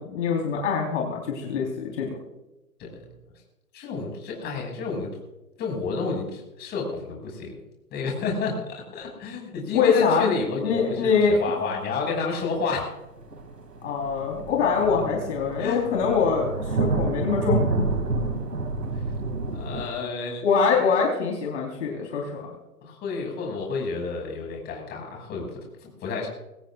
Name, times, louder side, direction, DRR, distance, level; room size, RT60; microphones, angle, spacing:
voice 1, 0.0-2.1 9.7-10.3 10.6-11.4 13.8-17.9 18.1-18.5 20.4-22.5, left 5 dB, 50° left, -1 dB, 4.2 m, -24 dB
voice 2, 3.7-5.1 5.6-7.6 7.9-12.9 15.6-15.9 19.5-20.4 22.8-26.3, left 4 dB, 20° left, 0 dB, 6.3 m, -30 dB
sound 1, 12.7-12.8 13.2-19.9, right 3 dB, 85° right, 2.7 m, -29 dB
23.5 x 17.0 x 2.5 m, 1.0 s
hypercardioid pair, 130°, 47 cm